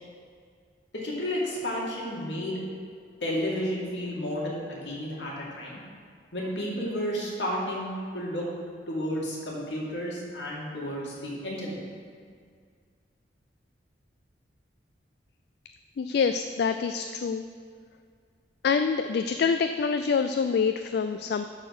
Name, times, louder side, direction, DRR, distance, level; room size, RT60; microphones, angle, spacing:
voice 1, 0.9-2.6 3.2-5.8 6.3-8.5 8.9-11.8, equal, 80° left, -4 dB, 2.3 m, -32 dB
voice 2, 16.0-17.4 18.6-21.4, left 5 dB, 60° left, 8 dB, 0.3 m, -26 dB
11.5 x 4.1 x 6.0 m, 2.1 s
head